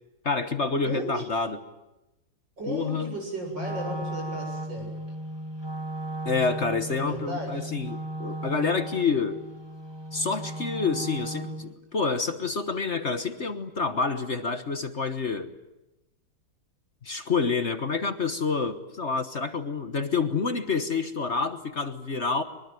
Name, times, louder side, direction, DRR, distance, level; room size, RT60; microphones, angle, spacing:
voice 1, 0.2-1.6 2.7-3.1 6.2-9.4 10.1-15.5 17.0-22.4, left 4 dB, 40° left, 9 dB, 1.4 m, -28 dB
voice 2, 0.8-1.2 2.6-4.9 6.9-7.5, right 1 dB, 75° right, 2 dB, 8.2 m, -35 dB
Wind instrument woodwind instrument, 3.5-11.7, right 1 dB, 15° right, 2.0 m, -36 dB
23.5 x 23.0 x 9.3 m, 0.98 s
omnidirectional pair, 2.0 m